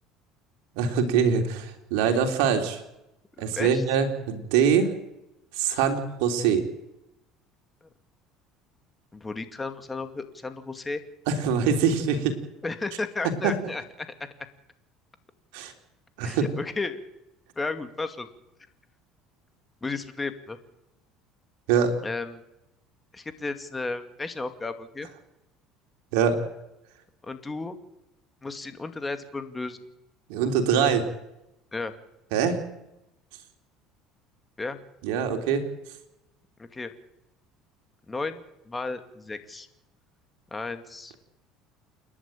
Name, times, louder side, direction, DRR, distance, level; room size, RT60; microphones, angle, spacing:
voice 1, 0.7-2.8 3.4-4.9 5.5-6.6 11.3-12.4 13.4-13.5 15.5-15.7 16.2-16.4 21.7-21.9 26.1-26.4 30.3-31.0 32.3-32.6 35.0-35.7, right 7 dB, 85° right, 4 dB, 3.6 m, -23 dB
voice 2, 3.4-3.8 9.1-11.0 12.6-14.1 16.2-17.0 17.6-18.3 19.8-20.6 22.0-22.4 23.1-25.1 27.2-27.8 28.4-29.8 31.7-31.9 34.6-34.8 36.6-36.9 38.1-39.7 40.5-41.1, left 3 dB, 15° left, 8 dB, 2.4 m, -33 dB
29.0 x 11.0 x 9.1 m, 0.90 s
supercardioid pair, 110°, 0 cm